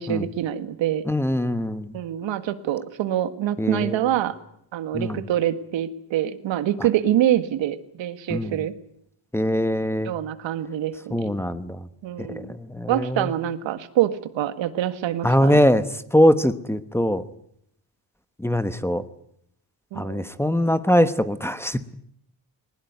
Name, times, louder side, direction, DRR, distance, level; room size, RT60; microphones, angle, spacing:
voice 1, 0.0-1.0 1.9-4.3 4.7-8.7 10.0-11.3 12.0-12.5 12.9-15.6 19.9-20.3, right 11 dB, 85° right, 11 dB, 1.8 m, -25 dB
voice 2, 1.1-1.9 3.6-4.1 4.9-5.2 8.3-8.6 9.3-10.1 11.1-11.8 12.2-13.3 15.2-15.8 16.1-17.2 18.4-19.0 20.0-21.9, equal, 5° left, 12 dB, 1.1 m, -22 dB
20.5 x 20.0 x 9.5 m, 0.73 s
cardioid pair, 125°, 44 cm